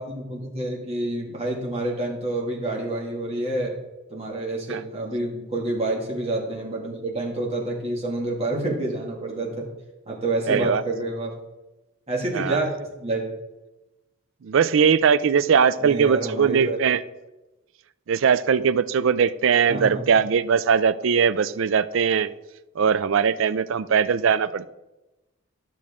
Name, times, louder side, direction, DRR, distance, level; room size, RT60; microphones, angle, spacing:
voice 1, 0.0-3.8 4.1-9.7 10.1-11.4 12.1-13.3 15.8-16.8 19.7-20.1, right 2 dB, 30° right, -3 dB, 2.0 m, -28 dB
voice 2, 10.5-10.8 12.3-12.6 14.4-17.0 18.1-22.3 22.8-24.7, right 6 dB, 60° right, 15 dB, 0.4 m, -20 dB
12.0 x 6.2 x 3.6 m, 1.0 s
head